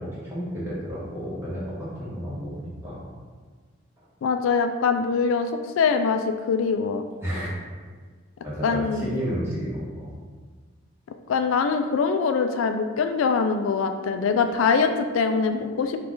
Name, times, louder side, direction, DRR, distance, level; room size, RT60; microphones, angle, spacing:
voice 1, 0.0-3.0 7.2-7.5 8.4-10.1, equal, 15° right, -9 dB, 1.4 m, -32 dB
voice 2, 4.2-7.0 8.6-9.2 11.3-16.0, left 5 dB, 90° left, 7 dB, 0.3 m, -23 dB
4.9 x 2.4 x 3.8 m, 1.5 s
head